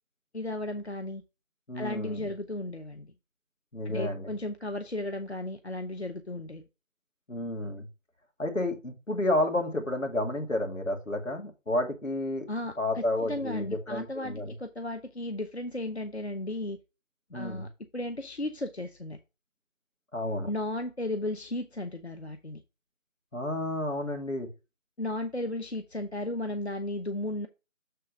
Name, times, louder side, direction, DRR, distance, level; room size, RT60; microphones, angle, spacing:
voice 1, 0.3-1.2 1.7-3.1 3.8-6.6 12.5-16.8 17.3-19.2 20.5-22.6 25.0-27.5, left 1 dB, 55° left, 6 dB, 0.7 m, -35 dB
voice 2, 1.7-2.2 3.7-4.3 7.3-7.9 8.4-12.5 12.8-14.5 17.3-17.7 20.1-20.5 23.3-24.5, left 1 dB, 75° left, 3 dB, 2.4 m, -31 dB
6.8 x 3.8 x 5.3 m, 0.28 s
figure-of-eight pair, 180°, 39 cm